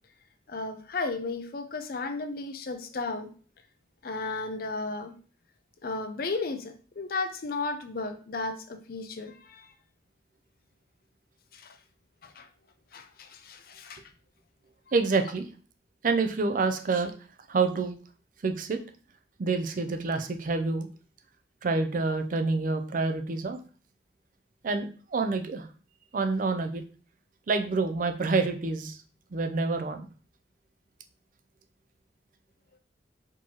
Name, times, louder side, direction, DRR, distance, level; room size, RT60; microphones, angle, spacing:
voice 1, 0.5-3.3 4.0-5.1 5.8-9.7 11.5-11.8 12.2-12.5 12.9-14.0, left 3 dB, 50° left, 7 dB, 0.5 m, -34 dB
voice 2, 14.9-15.5 16.0-17.1 17.5-17.9 18.4-18.8 19.4-20.9 21.6-23.6 24.6-25.7 26.1-26.8 27.5-29.0 29.3-30.1, right 3 dB, 45° right, 7 dB, 0.4 m, -27 dB
4.4 x 2.9 x 2.9 m, 0.39 s
head